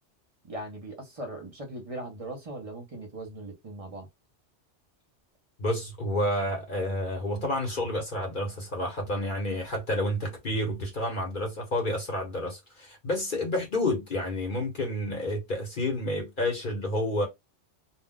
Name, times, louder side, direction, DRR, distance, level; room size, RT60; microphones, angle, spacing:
voice 1, 0.4-4.1, right 1 dB, 35° right, 0.8 m, -39 dB
voice 2, 5.6-17.3, left 1 dB, 45° left, 1.0 m, -30 dB
2.4 x 2.2 x 3.7 m
omnidirectional pair, 1.2 m